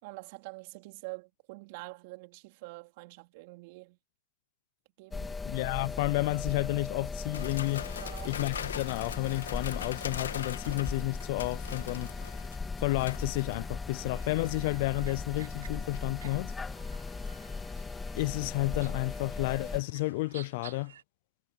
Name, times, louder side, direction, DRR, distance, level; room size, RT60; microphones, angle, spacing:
voice 1, 0.0-4.0 5.0-5.4 8.0-8.3, right 26 dB, 50° right, 3.9 m, -46 dB
sound 1, 5.1-19.8, left 4 dB, 10° left, 3.0 m, -38 dB
voice 2, 5.4-7.9 8.2-12.1 12.8-16.5 18.1-20.9, left 22 dB, 50° left, 0.6 m, -31 dB
sound 2, 7.3-14.1 14.4-14.7 15.5-16.0 18.1-19.7 20.1-20.2, left 8 dB, 80° left, 1.9 m, -42 dB
sound 3, 14.1-21.0, right 9 dB, 75° right, 5.4 m, -54 dB
hypercardioid pair, 130°, 0 cm